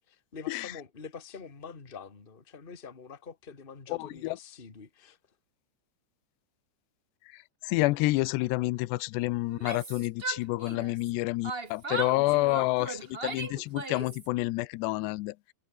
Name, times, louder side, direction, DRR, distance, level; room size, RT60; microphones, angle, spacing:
voice 1, 0.1-5.2 11.9-12.7, left 5 dB, 45° left, 0.6 m, -46 dB
voice 2, 3.9-4.4 7.6-15.5, left 20 dB, 80° left, 2.8 m, -29 dB
Yell, 9.5-11.1 11.4-14.3, right 3 dB, 80° right, 0.5 m, -37 dB
omnidirectional pair, 5.1 m